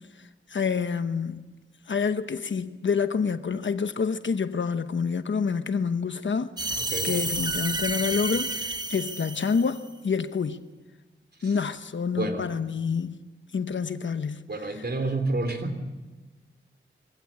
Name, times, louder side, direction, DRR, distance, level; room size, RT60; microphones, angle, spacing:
voice 1, 0.5-1.5 1.9-6.5 7.0-10.6 11.4-13.2 13.5-14.4, left 5 dB, 70° left, 1.0 m, -27 dB
sound 1, 6.6-9.9, right 2 dB, 20° right, 1.6 m, -30 dB
voice 2, 6.8-7.2 11.4-11.6 12.2-12.4 14.5-15.8, right 2 dB, 55° right, 3.3 m, -29 dB
24.0 x 16.0 x 8.9 m
wide cardioid pair, 70°, 20 cm